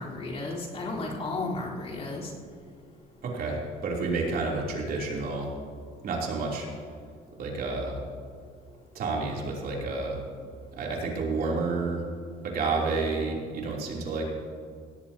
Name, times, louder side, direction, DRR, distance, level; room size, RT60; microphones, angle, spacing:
voice 1, 0.0-2.3, left 2 dB, 40° left, -5 dB, 3.9 m, -33 dB
voice 2, 3.2-5.5 6.0-6.7 7.4-8.0 8.9-10.2 10.8-12.0 12.4-14.2, right 3 dB, 60° right, -2 dB, 3.2 m, -30 dB
17.5 x 16.5 x 2.9 m, 2.1 s
cardioid pair, 110°, 17 cm